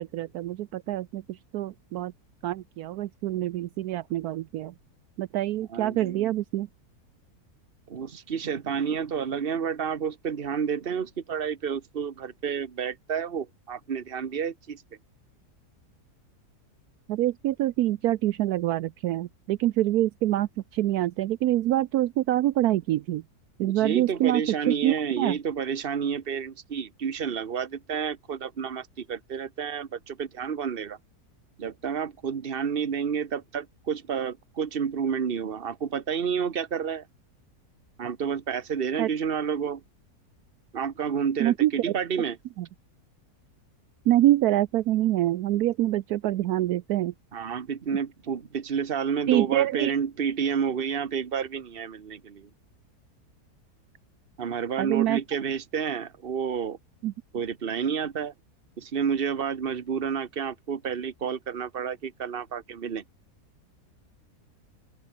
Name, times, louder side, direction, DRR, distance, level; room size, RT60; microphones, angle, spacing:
voice 1, 0.0-2.1 2.4-4.7 5.2-6.7 17.1-23.2 23.6-25.4 39.0-39.1 41.4-41.9 42.6-42.7 44.1-47.1 49.3-49.9 54.8-55.2 57.0-57.1, right 14 dB, 75° right, 1.1 m, -25 dB
voice 2, 5.7-6.3 7.9-14.8 23.6-31.0 31.6-37.1 38.0-39.8 40.7-42.4 47.3-52.5 54.4-56.8 57.3-58.3 58.8-63.0, right 7 dB, 40° right, 1.3 m, -30 dB
open air
omnidirectional pair, 1.7 m